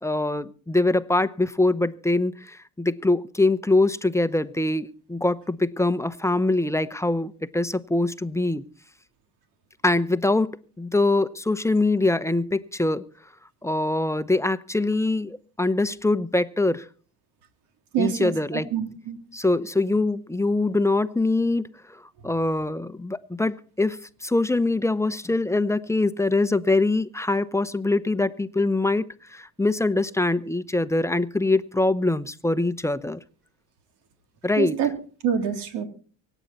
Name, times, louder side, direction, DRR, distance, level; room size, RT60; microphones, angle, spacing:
voice 1, 0.0-8.6 9.8-13.1 13.6-16.9 18.0-18.7 19.3-33.2 34.4-34.8, left 2 dB, 5° left, 0.9 m, -23 dB
voice 2, 17.9-19.2 34.6-34.9 35.2-35.8, right 8 dB, 70° right, 3.4 m, -26 dB
24.5 x 9.2 x 4.2 m
supercardioid pair, 70°, 42 cm